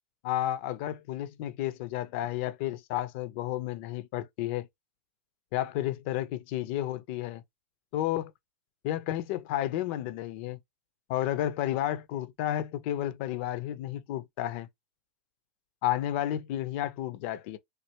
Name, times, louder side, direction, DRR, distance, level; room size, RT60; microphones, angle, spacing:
voice 1, 0.2-4.7 5.5-7.4 7.9-8.3 8.8-10.6 11.1-14.7 15.8-17.6, left 12 dB, 55° left, 0.5 m, -32 dB
3.2 x 2.4 x 3.0 m
hypercardioid pair, 105°, 7 cm